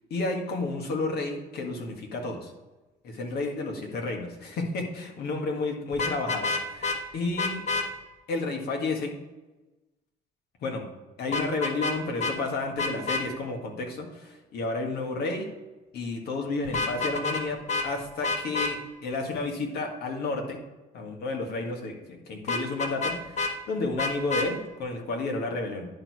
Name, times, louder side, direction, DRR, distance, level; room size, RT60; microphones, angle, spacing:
voice 1, 0.1-2.5 3.0-7.6 8.3-9.1 10.6-10.9 11.2-15.5 15.9-20.6 20.9-25.9, left 3 dB, 70° left, 2 dB, 1.8 m, -31 dB
Vehicle horn car horn honking, 5.9-7.0 7.4-7.9 11.3-11.9 12.2-12.3 12.8-13.2 16.6-17.4 17.7-17.9 18.2-18.7 22.5-23.5 24.0-24.5, left 3 dB, 45° left, 1.1 m, -28 dB
10.5 x 4.6 x 4.7 m, 1.1 s
cardioid pair, 110°, 17 cm